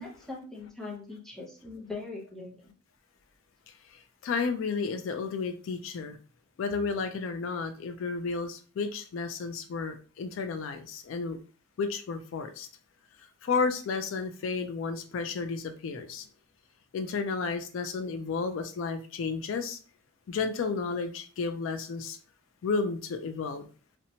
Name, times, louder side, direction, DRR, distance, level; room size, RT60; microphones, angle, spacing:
voice 1, 0.0-2.7, left 3 dB, ahead, -3 dB, 0.6 m, -41 dB
voice 2, 3.9-6.2 6.6-11.4 11.8-12.7 13.4-16.3 16.9-19.8 20.3-22.2 22.6-23.7, left 4 dB, 75° left, 7 dB, 0.3 m, -32 dB
2.8 x 2.1 x 2.7 m, 0.38 s
head